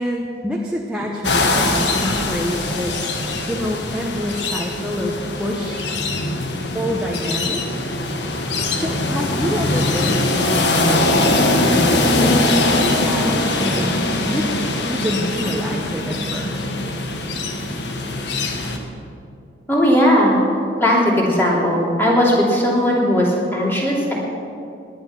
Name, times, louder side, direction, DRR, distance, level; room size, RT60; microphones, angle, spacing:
voice 1, 0.0-3.1 3.5-5.9 6.7-7.9 8.8-16.6, equal, 5° right, -2 dB, 1.0 m, -27 dB
sound 1, 1.2-18.8, left 2 dB, 70° left, 1.5 m, -21 dB
voice 2, 19.7-20.4 20.8-24.1, equal, 10° left, -4 dB, 2.9 m, -17 dB
18.0 x 10.5 x 6.0 m, 2.7 s
head